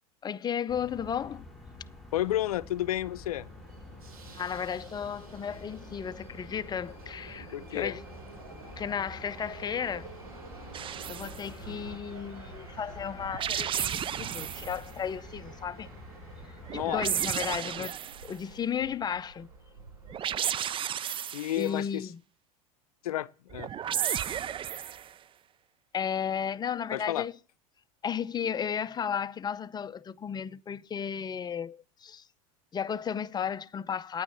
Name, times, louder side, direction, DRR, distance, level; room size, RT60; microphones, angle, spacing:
voice 1, 0.2-1.4 4.3-8.0 8.8-10.1 11.1-15.9 16.8-18.0 18.2-19.5 21.2-21.3 21.6-22.2 25.9-27.3 28.0-32.2 32.7-34.2, left 7 dB, 20° left, 0.6 m, -34 dB
sound 1, 0.7-17.6, left 2 dB, ahead, 4.0 m, -49 dB
voice 2, 2.1-3.5 7.5-7.9 16.7-17.0 17.8-17.9 21.3-22.1 23.0-23.7 26.9-27.3, left 13 dB, 85° left, 0.6 m, -31 dB
Subway metro underground, 2.3-20.2, right 3 dB, 85° right, 7.6 m, -49 dB
sound 2, 10.7-11.4 13.2-14.8 16.6-18.3 20.1-21.7 23.5-25.1, right 9 dB, 30° right, 0.5 m, -33 dB
10.0 x 9.1 x 7.2 m
hypercardioid pair, 100°, 18 cm